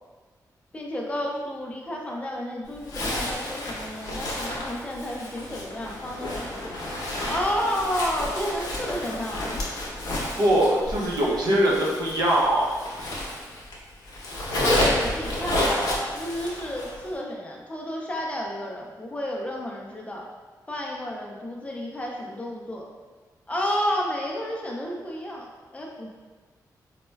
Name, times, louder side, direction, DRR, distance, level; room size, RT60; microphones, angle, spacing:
voice 1, 0.7-6.6 7.2-9.6 14.7-20.2 20.7-22.8 23.5-26.1, equal, 20° left, -2 dB, 0.4 m, -31 dB
Zipper (clothing), 2.8-13.8 14.0-17.0, left 1 dB, 60° left, 0.7 m, -30 dB
voice 2, 10.4-12.7, right 1 dB, 85° right, -4 dB, 0.6 m, -22 dB
4.0 x 2.1 x 2.2 m, 1.4 s
wide cardioid pair, 145°, 7 cm